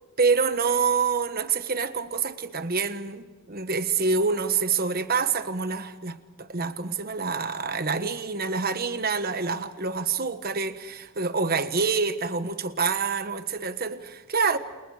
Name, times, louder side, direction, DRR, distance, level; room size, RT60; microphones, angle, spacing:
voice 1, 0.2-14.6, right 5 dB, 45° right, 1.3 m, -26 dB
29.5 x 29.5 x 5.0 m
head